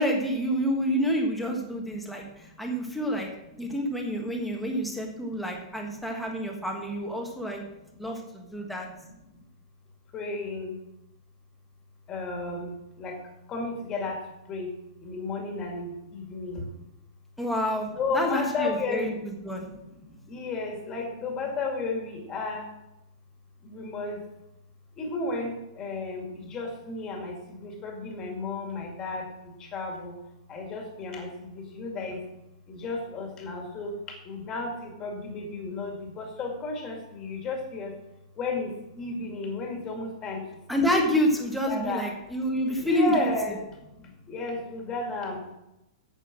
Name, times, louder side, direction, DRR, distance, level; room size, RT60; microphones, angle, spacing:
voice 1, 0.0-3.3 3.6-7.6 8.0-8.9 17.4-19.7 40.7-43.3, equal, ahead, -1 dB, 1.4 m, -28 dB
voice 2, 10.1-10.7 12.1-12.7 13.0-13.1 13.5-14.2 14.5-14.7 15.0-15.9 16.1-16.6 18.0-19.1 20.3-22.6 23.6-24.2 25.0-29.2 29.7-30.1 30.5-31.3 31.5-32.2 32.7-33.9 34.3-37.9 38.4-38.7 39.0-40.4 40.8-40.9 41.7-42.0 42.8-43.6 44.3-45.5, left 3 dB, 15° left, 1 dB, 2.2 m, -33 dB
9.1 x 8.1 x 6.2 m, 0.90 s
hypercardioid pair, 170°, 3 cm